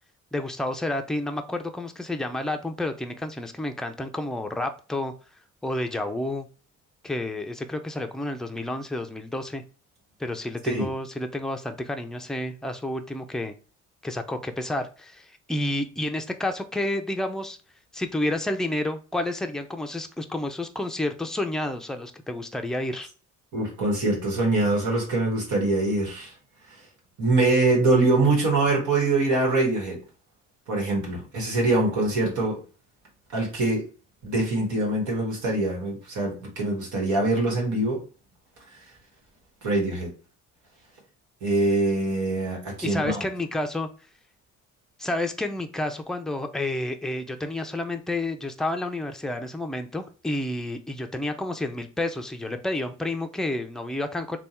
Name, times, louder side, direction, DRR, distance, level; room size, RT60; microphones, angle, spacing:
voice 1, 0.3-5.1 5.6-6.5 7.0-9.6 10.2-13.5 14.0-17.6 17.9-23.1 42.8-43.9 45.0-54.4, left 1 dB, ahead, 0.5 m, -30 dB
voice 2, 23.5-26.3 27.2-30.0 30.7-32.6 33.3-33.8 34.2-38.0 39.6-40.1 41.4-43.2, right 2 dB, 75° right, 1.6 m, -23 dB
3.4 x 2.3 x 4.2 m
cardioid pair, 90°, 30 cm